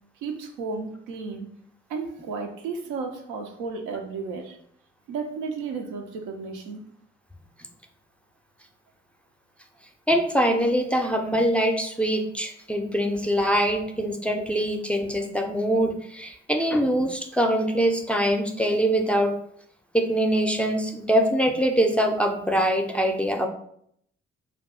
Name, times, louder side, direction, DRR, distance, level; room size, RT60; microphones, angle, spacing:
voice 1, 0.2-1.5 1.9-4.6 5.1-6.8, right 4 dB, 80° right, 4 dB, 0.5 m, -33 dB
voice 2, 10.1-19.3 19.9-23.5, equal, 5° left, 3 dB, 0.5 m, -23 dB
2.5 x 2.3 x 3.6 m, 0.69 s
hypercardioid pair, 40°, 29 cm